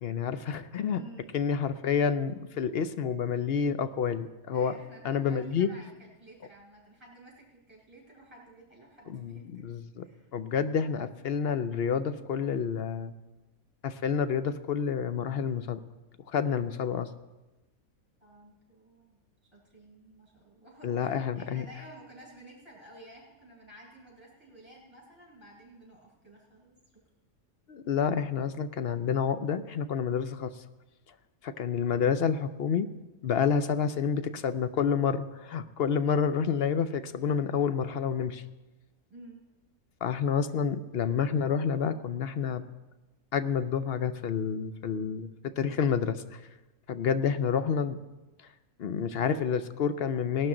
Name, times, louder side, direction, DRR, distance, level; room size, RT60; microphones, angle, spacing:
voice 1, 0.0-1.0 1.3-4.7 5.0-5.7 9.1-10.0 10.3-13.1 13.8-15.8 16.3-17.1 20.8-21.6 27.7-30.5 31.4-32.9 33.2-38.4 40.0-42.6 43.3-46.4 46.9-48.0 48.8-50.5, left 7 dB, 60° left, 11 dB, 0.7 m, -29 dB
voice 2, 0.9-1.4 4.5-9.7 10.0-10.3 18.2-19.2 19.5-26.8 39.1-39.4, right 1 dB, 20° right, -3 dB, 5.1 m, -52 dB
18.5 x 12.0 x 3.8 m, 1.1 s
omnidirectional pair, 1.5 m